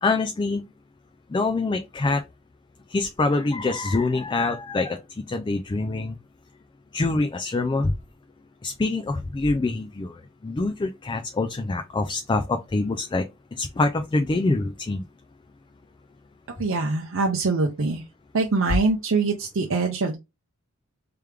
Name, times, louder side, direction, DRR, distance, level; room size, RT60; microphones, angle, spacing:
voice 1, 0.0-0.7 1.3-2.2 2.9-6.2 6.9-7.9 8.6-13.2 13.6-15.0, left 3 dB, 20° left, 0.3 m, -25 dB
voice 2, 16.6-18.0 18.3-20.1, right 3 dB, 60° right, 0.6 m, -23 dB
3.4 x 3.4 x 3.2 m
head